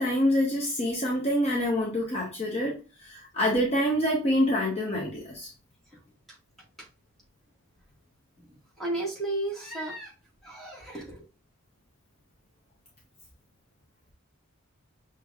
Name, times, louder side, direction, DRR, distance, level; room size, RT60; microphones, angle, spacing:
voice 1, 0.0-2.7 3.0-5.5, equal, 30° left, -2 dB, 0.8 m, -26 dB
voice 2, 8.4-10.1 10.4-11.2, right 1 dB, ahead, -6 dB, 1.8 m, -34 dB
6.1 x 3.0 x 2.4 m, 0.33 s
head